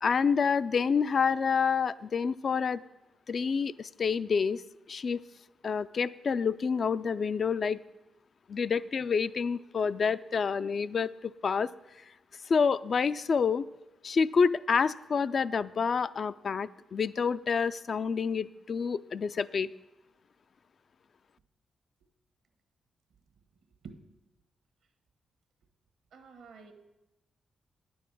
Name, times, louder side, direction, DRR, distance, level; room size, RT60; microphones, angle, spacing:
voice 1, 0.0-2.8 3.3-4.6 4.9-5.2 5.6-7.8 8.5-11.7 12.5-13.6 14.0-19.7, left 5 dB, 55° left, 14 dB, 0.3 m, -28 dB
voice 2, 26.1-26.7, right 5 dB, 80° right, 8 dB, 1.3 m, -48 dB
9.7 x 7.1 x 6.0 m, 0.99 s
supercardioid pair, 45°, 0 cm